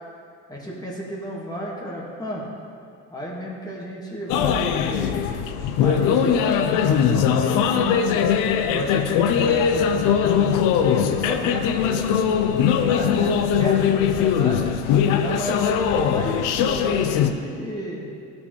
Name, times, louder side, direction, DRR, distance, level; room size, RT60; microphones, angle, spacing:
voice 1, 0.5-2.4 3.1-5.2 5.8-8.3 8.7-13.3 13.6-14.6 15.2-18.1, equal, 10° left, -5 dB, 1.7 m, -32 dB
sound 1, 4.3-17.3, left 8 dB, 90° left, 0.5 m, -21 dB
12.5 x 4.3 x 3.1 m, 2.3 s
supercardioid pair, 80°, 31 cm